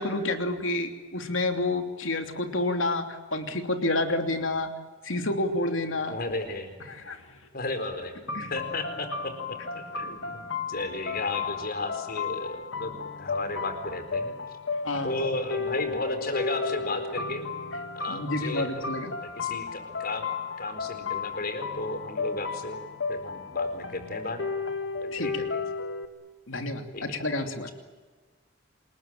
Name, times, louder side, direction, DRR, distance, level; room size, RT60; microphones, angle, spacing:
voice 1, 0.0-4.7 5.0-6.2 6.9-7.3 8.3-8.5 14.8-15.2 18.1-19.1 25.1-25.5 26.5-27.7, left 2 dB, 85° left, 6 dB, 3.0 m, -29 dB
voice 2, 6.1-6.7 7.5-8.1 8.5-14.3 15.0-17.4 17.9-18.8 19.2-20.3 20.6-22.8 23.1-24.4 25.0-25.6 26.9-27.1, left 2 dB, 50° left, 8 dB, 4.4 m, -34 dB
sound 1, 8.3-26.0, left 4 dB, 65° left, 2.2 m, -34 dB
27.5 x 21.0 x 9.0 m, 1.3 s
head